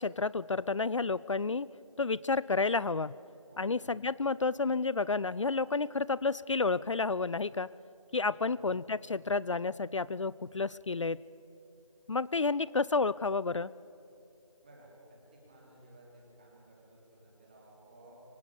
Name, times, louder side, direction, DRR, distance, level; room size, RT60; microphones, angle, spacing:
voice 1, 0.0-1.7 2.0-3.2 3.6-7.7 8.1-11.2 12.1-13.7, left 4 dB, 65° left, 20 dB, 0.4 m, -30 dB
voice 2, 3.5-4.1 8.4-8.7 14.6-18.2, right 1 dB, 15° right, -3 dB, 3.2 m, -56 dB
24.0 x 18.5 x 7.0 m, 2.8 s
figure-of-eight pair, 175°, 17 cm